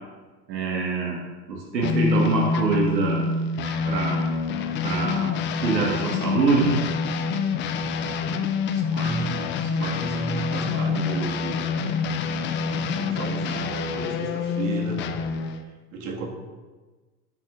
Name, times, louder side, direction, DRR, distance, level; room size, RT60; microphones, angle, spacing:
voice 1, 0.5-3.3 3.6-4.2 4.8-6.8, right 3 dB, 80° right, -2 dB, 1.7 m, -25 dB
sound 1, 1.8-15.6, left 4 dB, 25° left, 0.4 m, -26 dB
voice 2, 8.7-11.7 12.9-15.0 15.6-16.3, right 4 dB, 55° right, -1 dB, 1.9 m, -34 dB
13.5 x 5.9 x 2.5 m, 1.3 s
hypercardioid pair, 90°, 50 cm